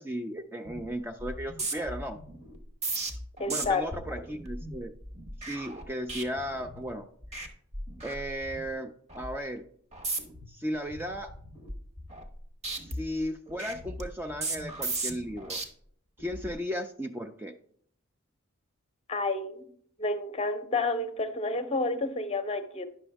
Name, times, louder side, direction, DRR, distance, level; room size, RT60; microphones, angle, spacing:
voice 1, 0.0-2.2 3.5-4.9 5.4-7.1 8.0-9.7 10.5-11.3 12.8-15.6 16.2-17.5, equal, 10° right, 6 dB, 0.3 m, -35 dB
sound 1, 0.6-0.9 1.2-6.9 7.2-7.5 7.7-8.7 9.1-9.4 9.9-10.5 10.9-12.4 12.6-15.6 16.2-16.5, right 2 dB, 30° right, 1.0 m, -37 dB
voice 2, 3.4-3.8 19.1-19.6 20.0-22.8, left 3 dB, 30° left, 8 dB, 0.7 m, -30 dB
9.9 x 6.1 x 3.4 m, 0.62 s
head